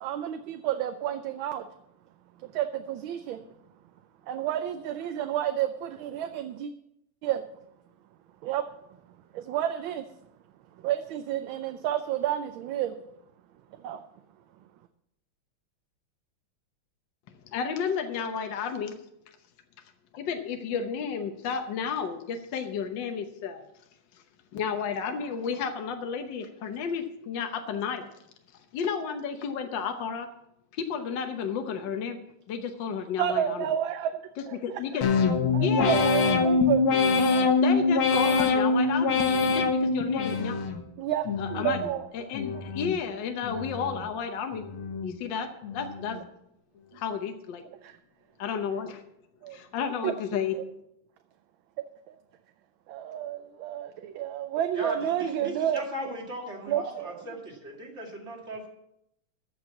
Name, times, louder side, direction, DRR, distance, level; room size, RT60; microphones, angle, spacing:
voice 1, 0.0-1.7 2.4-3.4 4.3-6.7 7.2-7.4 8.4-8.6 9.3-10.1 10.8-13.0 13.8-14.0 33.2-34.1 34.5-34.6 35.5-37.6 41.0-42.0 47.8-48.0 49.4-49.6 50.0-50.1 50.5-50.6 52.1-52.2 52.9-55.8 56.1-56.2 56.7-57.2, right 11 dB, 75° right, 8 dB, 1.4 m, -30 dB
voice 2, 17.3-19.0 20.1-23.6 24.1-24.2 24.5-28.1 28.7-30.3 30.7-32.2 32.5-33.7 34.4-35.1 35.6-36.0 37.6-40.6 41.4-44.6 45.0-46.2 46.9-47.6 48.4-49.0 49.5-50.7, left 6 dB, 65° left, 5 dB, 1.6 m, -32 dB
sound 1, 35.0-40.8 41.3-41.9 42.3-43.0 43.4-44.1 44.5-45.1 45.6-46.2, left 4 dB, 90° left, 2.0 m, -25 dB
voice 3, 54.7-58.7, right 1 dB, 35° right, 0 dB, 2.4 m, -37 dB
14.0 x 5.9 x 7.1 m, 0.80 s
omnidirectional pair, 2.3 m